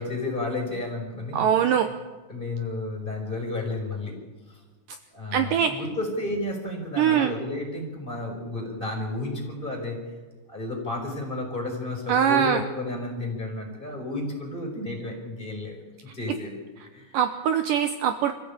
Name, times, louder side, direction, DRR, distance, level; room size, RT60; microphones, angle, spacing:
voice 1, 0.0-1.5 1.8-1.9 2.3-4.1 4.5-4.6 5.1-10.0 10.5-15.8 16.1-16.6 16.9-17.2, left 2 dB, 10° left, 0 dB, 5.4 m, -32 dB
voice 2, 1.3-1.9 5.3-5.7 7.0-7.3 12.1-12.6 17.1-18.3, right 9 dB, 70° right, 8 dB, 2.3 m, -22 dB
25.0 x 15.0 x 8.8 m, 1.3 s
omnidirectional pair, 4.4 m